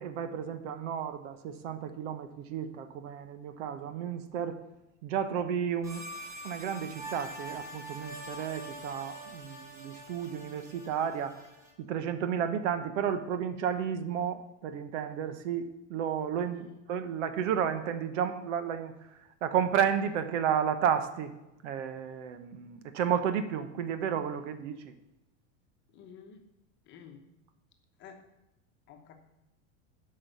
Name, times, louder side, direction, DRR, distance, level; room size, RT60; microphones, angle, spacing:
voice 1, 0.0-4.6 5.0-6.0 6.4-11.4 11.8-18.9 19.4-21.3 21.6-24.9, right 8 dB, 75° right, 11 dB, 1.1 m, -32 dB
sound 1, 5.8-11.7, right 1 dB, 10° right, 1.2 m, -44 dB
voice 2, 25.9-26.4 26.9-27.2 28.0-28.2 28.9-29.2, left 7 dB, 30° left, 5 dB, 1.0 m, -50 dB
9.5 x 5.6 x 6.9 m, 0.93 s
supercardioid pair, 165°, 38 cm